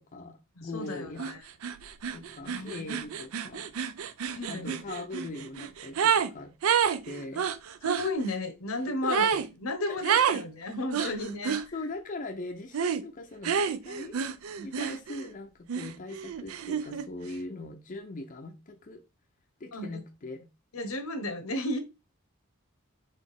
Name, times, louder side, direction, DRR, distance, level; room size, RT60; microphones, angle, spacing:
voice 1, 0.0-1.3 2.1-3.6 4.5-6.5 7.0-7.5 8.8-9.3 9.9-10.2 11.0-11.2 11.7-14.2 14.6-19.0 19.6-20.5, left 2 dB, 40° left, 0.5 m, -40 dB
voice 2, 0.6-1.4 2.4-2.9 4.3-4.7 7.8-9.3 9.6-11.6 14.6-14.7 19.7-19.9 20.7-21.8, left 1 dB, 85° left, 1.0 m, -33 dB
sound 1, 1.2-1.3 1.6-6.3 6.6-8.1 9.1-9.5 10.0-10.4 10.9-11.7 12.7-13.0 13.4-15.3 15.7-17.1, right 7 dB, 80° right, 0.4 m, -29 dB
4.2 x 3.5 x 3.5 m
head